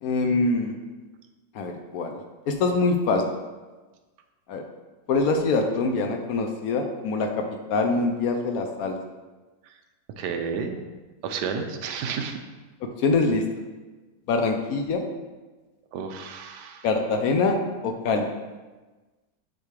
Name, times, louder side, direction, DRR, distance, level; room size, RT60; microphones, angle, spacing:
voice 1, 0.0-0.7 1.5-2.2 2.5-3.4 4.5-4.6 5.1-7.4 7.7-9.0 13.0-13.4 14.3-15.1 16.8-17.6 17.8-18.3, left 3 dB, 70° left, 4 dB, 1.0 m, -24 dB
voice 2, 10.2-10.8 11.2-12.4 15.9-16.9, right 6 dB, 90° right, 6 dB, 1.3 m, -31 dB
9.0 x 3.5 x 3.2 m, 1.2 s
omnidirectional pair, 1.8 m